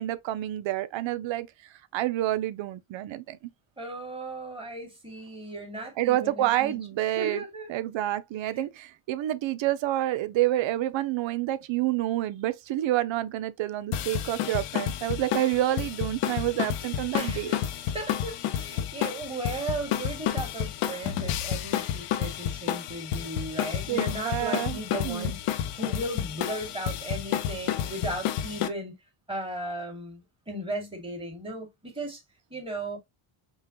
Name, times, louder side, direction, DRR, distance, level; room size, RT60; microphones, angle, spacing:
voice 1, 0.0-1.5 1.9-3.4 6.0-7.4 7.7-17.5 23.9-25.3, right 14 dB, 65° right, 0.6 m, -28 dB
voice 2, 3.8-6.9 7.2-7.9 8.5-8.6 17.1-28.9 29.3-32.2 32.5-33.0, right 1 dB, 10° right, 2.0 m, -36 dB
sound 1, 13.9-28.7, left 10 dB, 90° left, 0.8 m, -31 dB
5.5 x 2.3 x 2.9 m
cardioid pair, 110°, 50 cm